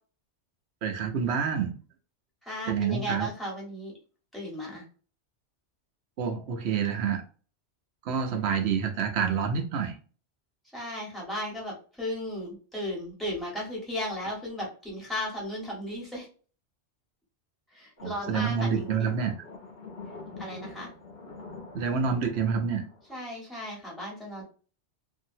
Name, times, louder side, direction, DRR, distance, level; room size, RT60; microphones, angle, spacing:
voice 1, 0.8-1.7 2.7-3.3 6.2-7.2 8.1-9.9 18.0-19.3 21.7-22.8, right 6 dB, 70° right, 4 dB, 0.9 m, -28 dB
voice 2, 2.4-3.9 4.3-4.8 10.7-16.3 17.7-19.2 20.4-20.9 23.1-24.4, equal, ahead, -4 dB, 1.3 m, -35 dB
sound 1, 18.0-23.3, left 3 dB, 65° left, 1.2 m, -44 dB
2.8 x 2.6 x 2.7 m, 0.38 s
omnidirectional pair, 1.2 m